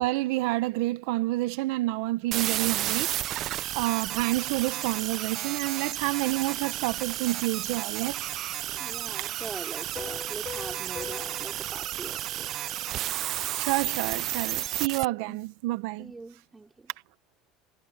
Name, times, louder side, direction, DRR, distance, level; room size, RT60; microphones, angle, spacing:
voice 1, 0.0-8.3 13.5-16.1, right 18 dB, 75° right, 1.3 m, -29 dB
sound 1, 2.3-15.0, right 13 dB, 40° right, 0.5 m, -32 dB
voice 2, 8.7-12.6 15.3-15.4 16.0-16.9, right 3 dB, 10° right, 4.2 m, -43 dB
Piano, 10.0-13.4, left 7 dB, 25° left, 5.3 m, -43 dB
cardioid pair, 155°, 0 cm